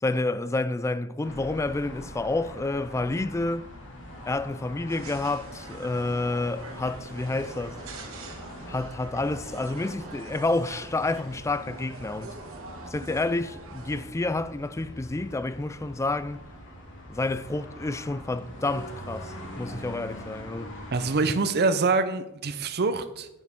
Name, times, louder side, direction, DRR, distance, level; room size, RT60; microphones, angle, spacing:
voice 1, 0.0-3.7 4.2-7.8 8.7-12.4 12.9-16.4 17.1-20.7, left 2 dB, 15° left, 0.3 m, -29 dB
sound 1, 1.2-21.1, equal, 60° left, 2.7 m, -44 dB
sound 2, 4.9-14.1, right 2 dB, 70° right, 1.7 m, -44 dB
voice 2, 20.9-23.3, right 3 dB, 50° right, 0.7 m, -25 dB
10.5 x 8.2 x 3.7 m
head